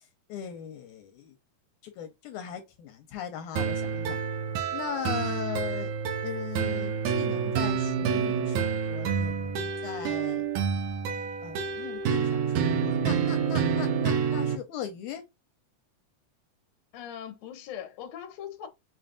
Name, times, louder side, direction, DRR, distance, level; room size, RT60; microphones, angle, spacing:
voice 1, 0.3-1.3 1.8-4.2 4.7-5.9 6.2-10.5 11.4-15.2, left 10 dB, 80° left, 2.1 m, -39 dB
sound 1, 3.6-14.6, right 6 dB, 80° right, 2.1 m, -28 dB
voice 2, 16.9-18.7, left 9 dB, 65° left, 1.9 m, -40 dB
5.7 x 2.5 x 2.2 m
omnidirectional pair, 3.6 m